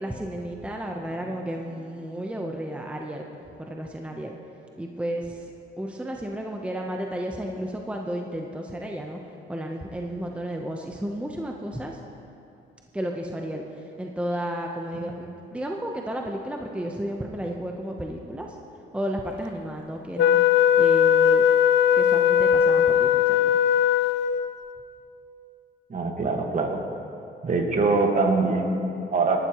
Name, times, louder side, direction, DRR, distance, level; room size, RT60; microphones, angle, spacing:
voice 1, 0.0-3.2 3.6-4.4 4.8-5.5 5.8-9.2 9.5-12.0 12.9-18.6 18.9-20.4 20.8-21.5 21.9-23.5, right 1 dB, 5° right, 1 dB, 0.8 m, -32 dB
Wind instrument woodwind instrument, 20.2-24.6, left 9 dB, 65° left, 0.4 m, -19 dB
voice 2, 25.9-26.8 27.4-29.4, right 3 dB, 40° right, 3 dB, 1.6 m, -24 dB
19.0 x 12.0 x 3.0 m, 2.7 s
cardioid pair, 90°, 20 cm